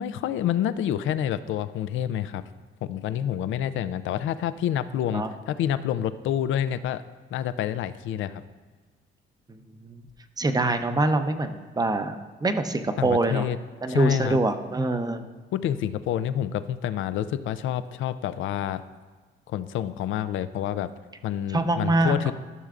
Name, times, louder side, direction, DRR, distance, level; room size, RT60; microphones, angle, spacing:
voice 1, 0.0-2.4 2.8-7.0 7.3-8.4 13.0-13.6 13.9-14.4 15.5-18.8 19.5-20.9 21.2-22.3, left 10 dB, 80° left, 13 dB, 0.5 m, -28 dB
voice 2, 9.5-10.0 10.4-12.2 12.4-13.5 13.8-15.2 21.5-22.3, right 2 dB, 20° right, 8 dB, 0.7 m, -25 dB
13.5 x 6.5 x 2.5 m, 1.4 s
cardioid pair, 90°, 20 cm